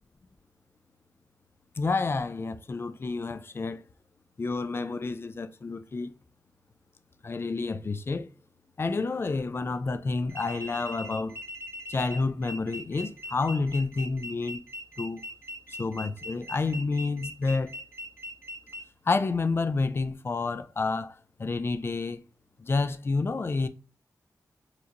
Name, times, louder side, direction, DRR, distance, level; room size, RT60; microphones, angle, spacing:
voice 1, 1.8-3.8 4.4-6.1 7.2-8.3 8.8-11.4 11.9-14.6 15.0-15.2 15.7-17.7 19.1-21.1 21.4-22.2 22.6-23.7, left 3 dB, 35° left, 0.4 m, -29 dB
sound 1, 10.3-18.8, left 1 dB, 40° right, 1.0 m, -40 dB
4.2 x 2.9 x 2.5 m
wide cardioid pair, 135°, 7 cm